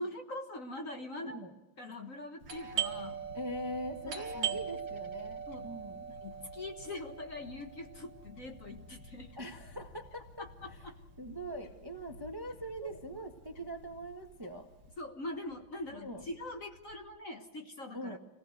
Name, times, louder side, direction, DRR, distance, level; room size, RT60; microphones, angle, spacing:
voice 1, 0.0-1.4 1.8-3.2 4.1-4.6 5.5-5.7 6.1-9.3 10.4-11.0 12.8-13.0 15.0-18.2, left 1 dB, 40° left, 5 dB, 1.8 m, -43 dB
voice 2, 1.2-1.5 3.3-6.1 9.4-10.4 11.2-14.7 15.9-16.2 17.9-18.2, right 1 dB, 10° right, 5 dB, 1.4 m, -42 dB
Fowl / Bird, 2.4-17.0, left 3 dB, 75° left, 2.6 m, -56 dB
Doorbell, 2.4-11.8 12.1-12.2 12.8-13.2 13.5-14.9, right 9 dB, 65° right, 2.8 m, -41 dB
26.5 x 18.5 x 6.6 m, 0.96 s
omnidirectional pair, 2.4 m